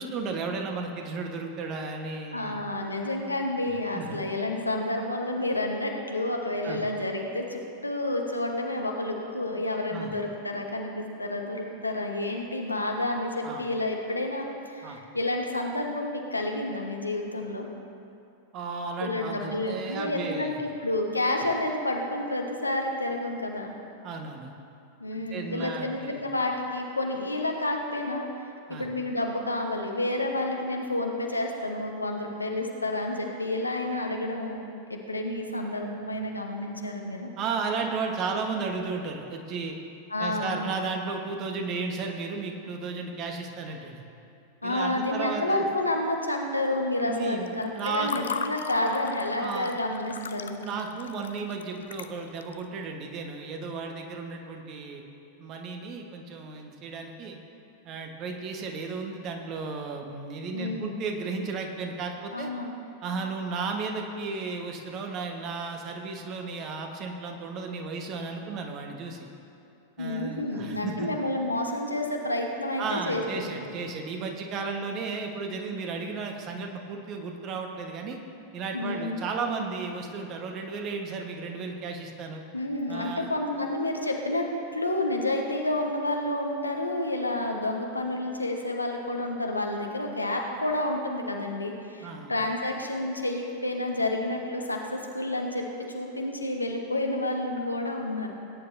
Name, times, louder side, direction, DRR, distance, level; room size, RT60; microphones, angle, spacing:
voice 1, 0.0-2.6 3.9-4.2 6.6-6.8 9.9-10.1 13.4-13.6 14.8-15.0 18.5-20.6 24.0-24.5 25.1-26.2 28.7-28.9 37.4-39.8 40.2-44.0 44.6-45.7 47.1-48.1 49.4-49.7 50.6-55.0 55.4-57.4 57.8-62.5 63.0-69.3 70.0-71.1 72.8-78.2 78.5-82.4 82.9-83.3 92.0-92.3, right 4 dB, 35° right, 3 dB, 1.3 m, -34 dB
voice 2, 2.3-17.7 19.0-23.7 25.0-34.6 34.9-37.3 40.1-40.6 44.6-50.6 60.5-61.0 62.3-62.7 70.0-73.6 78.7-79.2 82.5-98.3, left 1 dB, 85° left, 2 dB, 1.2 m, -30 dB
Water / Fill (with liquid), 47.5-52.6, left 7 dB, 65° left, 0.4 m, -38 dB
18.5 x 9.7 x 2.7 m, 2.6 s
figure-of-eight pair, 90°, 0 cm